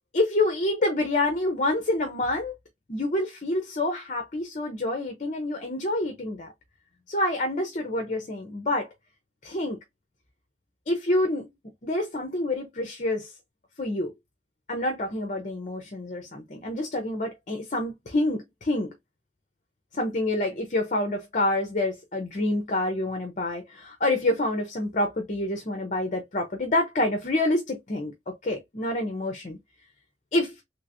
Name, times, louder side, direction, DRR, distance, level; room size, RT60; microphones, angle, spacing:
voice 1, 0.1-2.5 2.9-6.5 7.1-8.9 9.4-9.8 10.9-11.5 11.8-13.3 13.8-14.1 14.7-18.9 19.9-28.1 28.4-29.6 30.3-30.5, left 1 dB, 40° left, 0.7 m, -27 dB
3.3 x 3.0 x 2.6 m
head